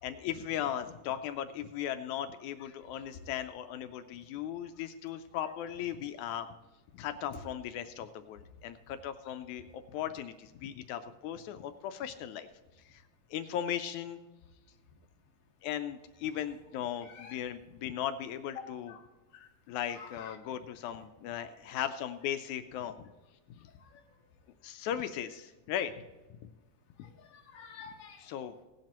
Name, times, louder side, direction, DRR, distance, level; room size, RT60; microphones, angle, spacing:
voice 1, 0.0-6.5 6.9-12.5 12.8-13.0 13.3-14.2 15.6-18.9 19.7-23.1 24.6-26.0 27.0-27.1 28.2-28.6, left 10 dB, 80° left, 9 dB, 1.9 m, -37 dB
voice 2, 17.0-17.4 18.5-19.0 19.3-19.5 19.9-20.4 21.6-21.7 23.8-24.0 27.0-28.3, left 6 dB, 35° left, 0 dB, 1.4 m, -49 dB
17.0 x 10.5 x 2.9 m, 1.2 s
omnidirectional pair, 3.5 m